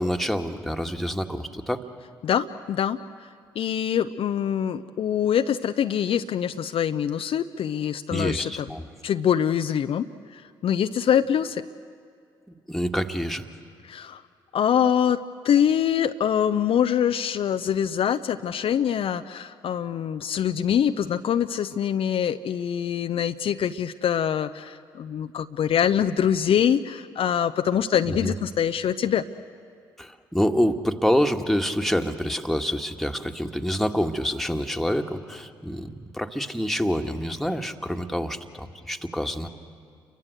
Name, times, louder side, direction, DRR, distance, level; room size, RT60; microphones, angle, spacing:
voice 1, 0.0-1.8 8.1-8.9 12.7-13.4 28.1-28.3 30.0-39.5, equal, ahead, 4 dB, 1.9 m, -27 dB
voice 2, 2.2-3.0 3.6-8.7 9.0-10.1 10.3-11.6 13.9-14.2 14.5-29.2, left 9 dB, 55° left, 8 dB, 0.7 m, -24 dB
29.5 x 23.0 x 8.0 m, 2.3 s
hypercardioid pair, 45°, 11 cm